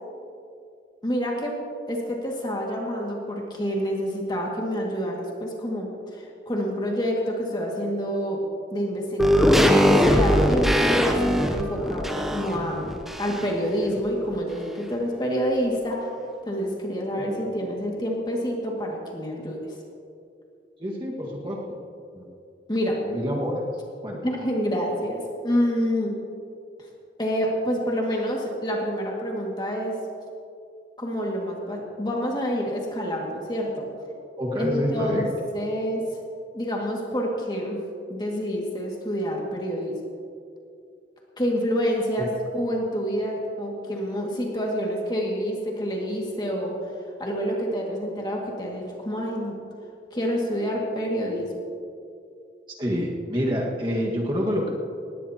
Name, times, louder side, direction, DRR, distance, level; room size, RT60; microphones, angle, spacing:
voice 1, 1.0-1.5 1.9-8.4 8.7-16.1 16.5-19.6 22.7-23.0 24.2-26.2 27.2-30.0 31.0-33.9 34.6-35.3 35.5-36.0 36.5-37.8 38.1-40.0 41.4-46.8 47.2-49.5 50.1-51.5, equal, 25° left, -1 dB, 2.1 m, -27 dB
sound 1, 9.2-13.7 14.0-14.1, equal, ahead, 0.7 m, -21 dB
voice 2, 20.8-21.8 22.1-22.3 23.0-23.6 24.0-24.3 34.4-35.3 42.2-42.3 52.8-54.7, equal, 25° right, -2 dB, 1.7 m, -27 dB
19.0 x 17.5 x 2.9 m, 2.5 s
head